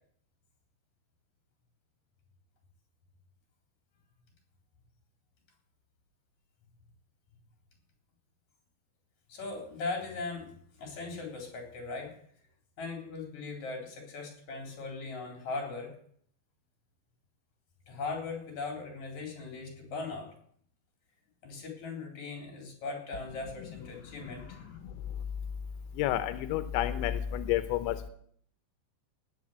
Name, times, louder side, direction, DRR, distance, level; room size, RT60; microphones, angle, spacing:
voice 1, 9.3-10.5 10.8-12.1 12.8-15.9 17.9-20.3 21.4-24.8, left 3 dB, 40° left, 2 dB, 4.8 m, -39 dB
voice 2, 26.0-28.1, left 12 dB, 90° left, 11 dB, 3.1 m, -30 dB
18.0 x 6.7 x 8.0 m, 0.63 s
omnidirectional pair, 5.2 m